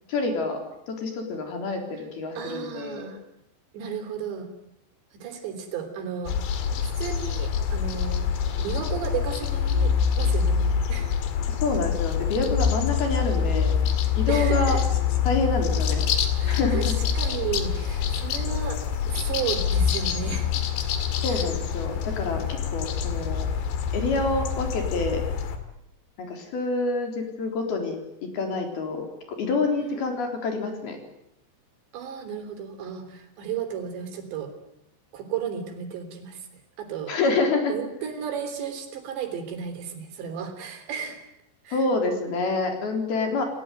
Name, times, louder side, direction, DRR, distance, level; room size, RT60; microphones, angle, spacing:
voice 1, 0.1-3.1 11.5-13.7 14.2-14.8 15.2-16.1 16.5-16.9 21.2-23.5 23.9-25.2 26.2-31.0 37.1-37.7 41.7-43.4, left 3 dB, 60° left, 4 dB, 5.7 m, -27 dB
voice 2, 2.4-3.2 3.7-4.5 5.1-6.4 6.7-8.3 8.6-10.6 10.9-11.2 14.3-14.8 16.4-16.9 17.2-18.8 19.1-20.5 21.3-21.4 29.8-29.9 31.9-34.5 35.1-36.5 36.8-37.1 37.7-41.2 41.7-41.9, right 7 dB, 80° right, 7 dB, 5.6 m, -33 dB
sound 1, 6.3-25.6, left 7 dB, 80° left, 4.2 m, -25 dB
29.0 x 18.0 x 9.3 m, 0.83 s
omnidirectional pair, 5.0 m